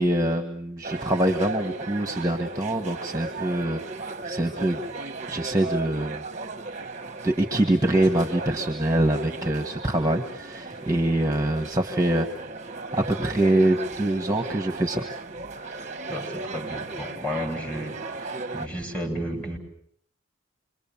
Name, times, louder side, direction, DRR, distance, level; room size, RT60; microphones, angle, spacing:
voice 1, 0.0-3.8 4.3-4.8 5.3-6.2 7.2-12.3 12.9-15.0, right 1 dB, 15° right, 5 dB, 1.7 m, -24 dB
sound 1, 0.8-18.7, right 3 dB, 35° right, 1.1 m, -36 dB
voice 2, 16.1-18.0 18.5-19.6, equal, 5° left, 0 dB, 7.7 m, -32 dB
27.5 x 24.0 x 7.3 m, 0.66 s
head